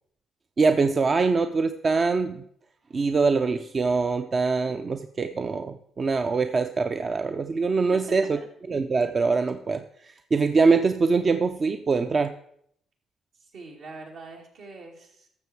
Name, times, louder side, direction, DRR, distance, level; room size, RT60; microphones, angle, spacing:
voice 1, 0.6-2.4 2.9-8.2 8.7-12.3, right 4 dB, 40° right, 8 dB, 0.5 m, -23 dB
voice 2, 13.3-15.3, right 3 dB, 75° right, 0 dB, 2.8 m, -44 dB
12.5 x 7.0 x 4.6 m, 0.70 s
cardioid pair, 90°, 0 cm